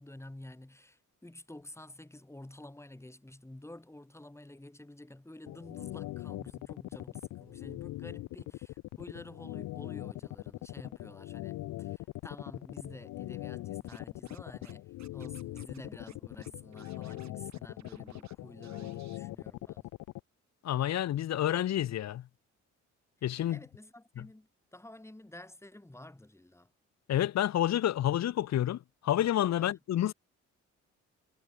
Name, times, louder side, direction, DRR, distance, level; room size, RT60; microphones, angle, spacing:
voice 1, 0.0-19.9 23.4-26.7 29.6-29.8, left 1 dB, 10° left, 6.8 m, -50 dB
sound 1, 5.5-20.2, left 17 dB, 85° left, 1.0 m, -41 dB
Scratching (performance technique), 13.9-14.7 15.0-15.8 16.1-16.2 16.4-18.3 18.6-19.2, right 10 dB, 65° right, 6.2 m, -60 dB
voice 2, 20.6-22.2 23.2-23.6 24.2-24.3 27.1-30.1, left 12 dB, 60° left, 1.0 m, -29 dB
cardioid pair, 90°, 30 cm